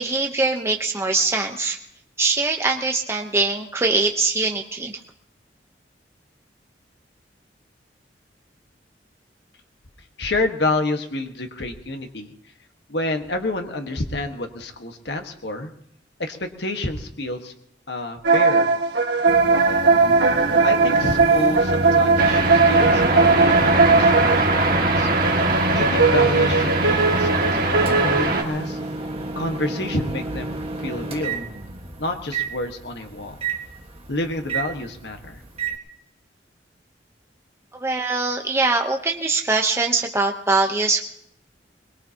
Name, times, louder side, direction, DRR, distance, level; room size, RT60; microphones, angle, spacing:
voice 1, 0.0-1.8 2.2-5.0 37.8-41.0, right 3 dB, 15° right, 2 dB, 0.9 m, -22 dB
voice 2, 10.2-12.3 12.9-15.7 16.2-17.5 17.9-18.7 20.6-25.1 25.7-28.8 29.3-31.4 32.0-33.4 34.1-35.4, left 2 dB, 70° left, 5 dB, 1.5 m, -29 dB
sound 1, 18.2-24.6 25.1-28.6, right 4 dB, 70° right, 1.6 m, -19 dB
Microwave oven, 19.3-35.8, right 1 dB, 35° right, 1.6 m, -29 dB
sound 2, 22.2-28.4, right 3 dB, 50° right, 2.0 m, -22 dB
22.5 x 21.5 x 2.9 m, 0.72 s
head